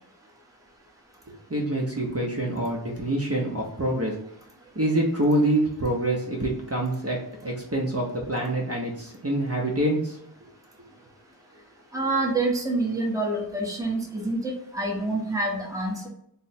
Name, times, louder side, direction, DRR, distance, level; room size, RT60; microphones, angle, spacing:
voice 1, 1.3-4.2 4.7-10.2, right 1 dB, 35° right, -2 dB, 0.7 m, -26 dB
voice 2, 11.9-16.1, right 2 dB, 10° right, -2 dB, 0.8 m, -27 dB
3.2 x 2.0 x 4.1 m, 0.74 s
wide cardioid pair, 55°, 40 cm